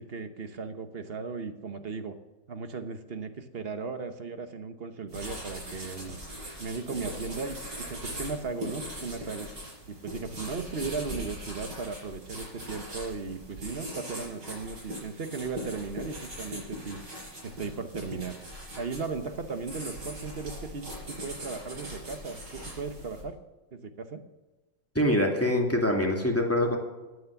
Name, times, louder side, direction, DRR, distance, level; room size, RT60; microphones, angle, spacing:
voice 1, 0.0-2.2 2.5-6.2 6.6-9.5 9.9-17.0 17.4-18.4 18.8-23.4 23.7-24.2, right 4 dB, 40° right, 9 dB, 1.0 m, -36 dB
sound 1, 5.1-23.2, equal, 65° right, 5.8 m, -41 dB
voice 2, 24.9-26.8, left 1 dB, 10° left, 1 dB, 2.3 m, -24 dB
15.0 x 9.5 x 7.0 m, 1.2 s
omnidirectional pair, 1.9 m